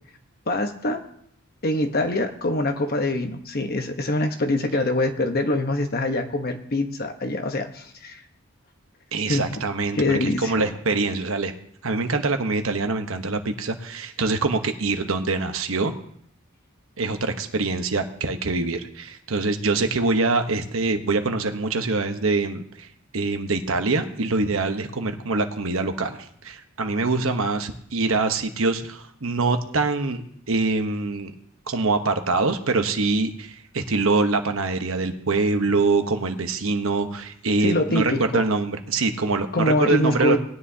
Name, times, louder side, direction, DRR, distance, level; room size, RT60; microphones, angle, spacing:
voice 1, 0.5-1.0 1.6-8.2 9.3-9.4 9.9-10.7 37.6-38.4 39.5-40.4, left 1 dB, 45° left, 5 dB, 1.1 m, -24 dB
voice 2, 9.1-11.5 11.8-15.9 17.0-22.9 23.1-30.2 30.5-31.3 31.7-40.4, right 3 dB, 70° right, 7 dB, 1.0 m, -24 dB
19.0 x 10.0 x 2.8 m, 0.68 s
head